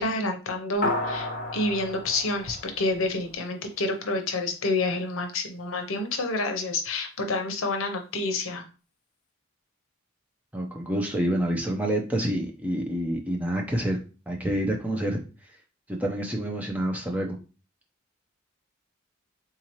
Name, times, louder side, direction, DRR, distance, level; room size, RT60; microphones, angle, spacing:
voice 1, 0.0-8.6, left 2 dB, 70° left, 5 dB, 0.7 m, -28 dB
sound 1, 0.8-3.5, left 2 dB, 40° left, 1.0 m, -32 dB
voice 2, 10.5-14.0 14.3-15.2 16.0-17.4, right 1 dB, 5° right, 0 dB, 0.5 m, -27 dB
3.7 x 2.8 x 2.9 m, 0.34 s
head